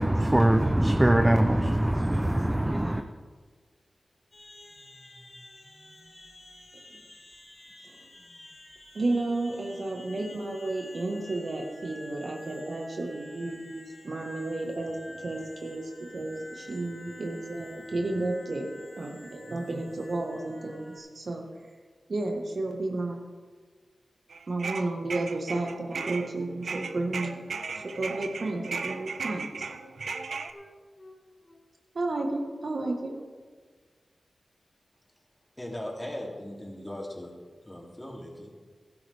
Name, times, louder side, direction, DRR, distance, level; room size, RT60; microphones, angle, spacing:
voice 1, 0.0-3.0, right 1 dB, 15° right, 0.7 m, -22 dB
sound 1, 4.3-21.0, left 1 dB, 55° left, 3.2 m, -49 dB
voice 2, 8.9-21.7 22.1-23.2 24.5-27.4 27.7-29.7 30.0-30.1 31.9-33.2, right 2 dB, 65° right, 1.6 m, -32 dB
sound 2, 24.3-26.3 26.6-30.5, right 5 dB, 80° right, 0.5 m, -36 dB
Wind instrument woodwind instrument, 25.6-29.8 30.1-31.2 31.4-31.6, left 1 dB, 30° left, 2.2 m, -49 dB
voice 3, 35.6-37.3 37.6-38.5, left 1 dB, 15° left, 3.0 m, -38 dB
14.0 x 12.0 x 3.6 m
cardioid pair, 55°, 0 cm